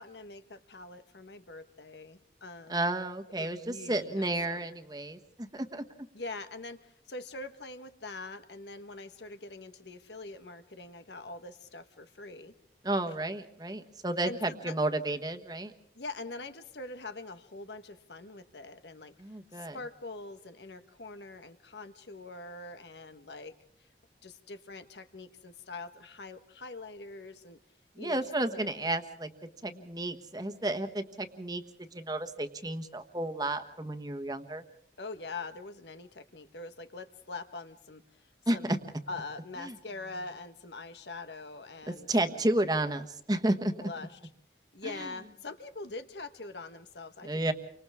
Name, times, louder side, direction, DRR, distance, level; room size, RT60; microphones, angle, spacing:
voice 1, 0.0-2.8 3.4-4.7 6.1-12.5 14.2-14.7 15.9-19.1 19.5-23.5 24.2-27.6 28.0-28.6 29.6-29.9 35.0-38.7 39.1-42.5 43.8-44.2 44.7-47.5, left 3 dB, 85° left, 10 dB, 1.4 m, -44 dB
voice 2, 2.7-5.8 12.8-15.7 19.2-19.8 28.0-29.3 29.6-34.6 38.5-38.8 39.6-39.7 42.1-43.7 44.8-45.1 47.2-47.5, right 1 dB, 20° right, 8 dB, 1.3 m, -32 dB
30.0 x 25.0 x 3.6 m, 0.71 s
head